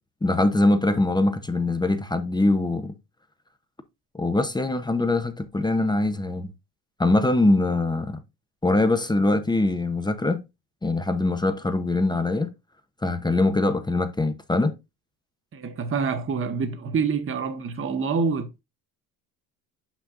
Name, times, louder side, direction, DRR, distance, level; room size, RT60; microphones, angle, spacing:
voice 1, 0.2-2.9 4.1-6.5 7.0-8.2 8.6-10.4 10.8-12.5 13.0-14.8, left 2 dB, 10° left, 0.8 m, -23 dB
voice 2, 15.5-18.6, right 5 dB, 35° right, 1.2 m, -26 dB
6.7 x 6.0 x 2.5 m
supercardioid pair, 80°, 37 cm